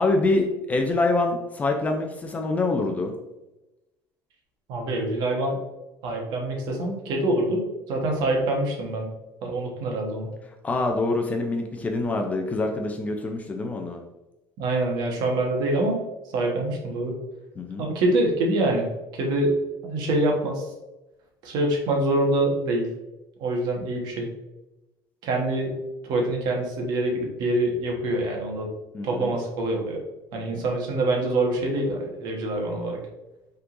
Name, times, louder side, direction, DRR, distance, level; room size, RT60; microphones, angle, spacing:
voice 1, 0.0-3.1 10.6-14.0 17.6-17.8 28.9-29.4 30.3-30.6, left 2 dB, 20° left, 3 dB, 0.4 m, -25 dB
voice 2, 4.7-5.6 6.0-9.1 9.4-10.3 14.6-16.0 16.3-17.2 17.8-19.5 19.8-20.7 21.4-22.9 23.4-24.3 25.2-25.8 26.0-28.7 29.0-30.0 30.3-33.0, right 2 dB, 55° right, 0 dB, 1.2 m, -25 dB
5.6 x 3.7 x 2.5 m, 0.98 s
cardioid pair, 165°, 8 cm